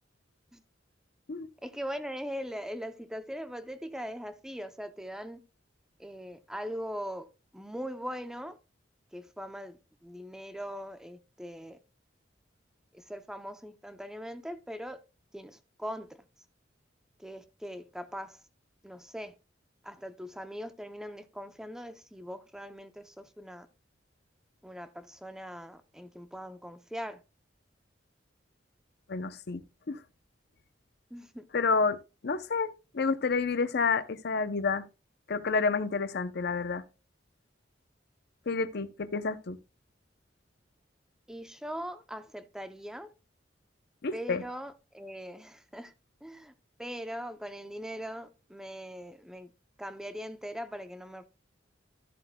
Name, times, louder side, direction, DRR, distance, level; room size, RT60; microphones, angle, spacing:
voice 1, 1.6-5.4 6.0-8.6 9.1-11.8 12.9-15.0 15.3-16.1 17.2-18.4 18.8-19.3 19.8-23.7 24.6-27.2 31.1-31.4 41.3-43.1 44.1-45.9 46.2-46.5 46.8-49.5 49.8-51.3, equal, 5° right, 0.6 m, -41 dB
voice 2, 29.1-29.6 29.9-30.0 31.5-32.0 32.2-34.9 35.3-36.8 38.5-39.6 44.0-44.4, left 4 dB, 60° left, 0.6 m, -29 dB
13.0 x 7.5 x 2.2 m
head